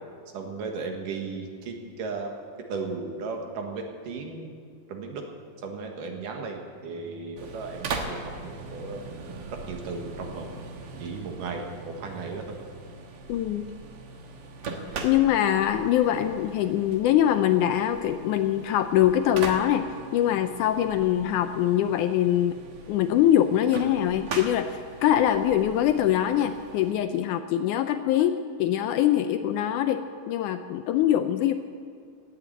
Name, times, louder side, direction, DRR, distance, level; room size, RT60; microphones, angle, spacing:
voice 1, 0.3-2.3 2.7-4.5 4.9-5.2 5.6-9.0 9.7-10.5 11.0-12.5, right 4 dB, 70° right, 2 dB, 3.1 m, -35 dB
sound 1, 7.4-26.9, right 3 dB, 55° right, 1.8 m, -40 dB
sound 2, 7.9-13.2, right 5 dB, 90° right, 2.7 m, -46 dB
voice 2, 13.3-13.7 15.0-22.6 22.9-31.5, left 11 dB, 80° left, 9 dB, 1.9 m, -23 dB
16.5 x 9.3 x 8.8 m, 2.1 s
omnidirectional pair, 3.9 m